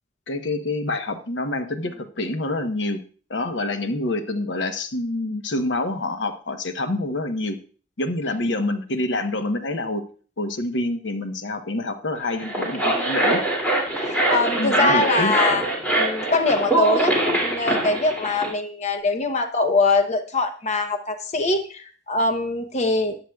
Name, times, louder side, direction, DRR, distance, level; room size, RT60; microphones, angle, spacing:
voice 1, 0.3-3.0 3.3-7.6 8.0-10.0 10.4-13.4 14.6-15.3, left 2 dB, 70° left, 8 dB, 1.0 m, -27 dB
sound 1, 12.3-18.5, right 2 dB, 10° left, 2.6 m, -23 dB
voice 2, 14.0-15.7 16.0-23.2, left 3 dB, 35° left, 6 dB, 0.8 m, -23 dB
14.0 x 10.0 x 2.3 m, 0.41 s
head